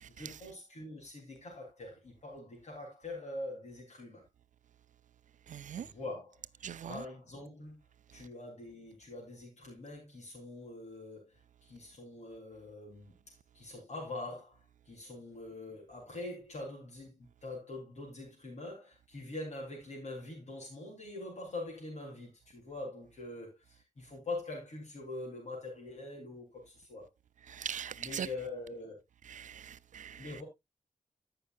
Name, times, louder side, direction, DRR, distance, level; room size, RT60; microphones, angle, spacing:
voice 1, 0.2-4.2 5.7-6.4 6.9-7.8 8.1-13.1 13.5-14.6 14.9-27.1 28.0-29.0 30.2-30.4, left 2 dB, 60° left, 3.5 m, -44 dB
voice 2, 5.5-5.9 6.6-7.0 27.5-28.3 29.3-30.3, right 9 dB, 80° right, 0.5 m, -41 dB
17.0 x 5.7 x 2.4 m
wide cardioid pair, 165°, 13 cm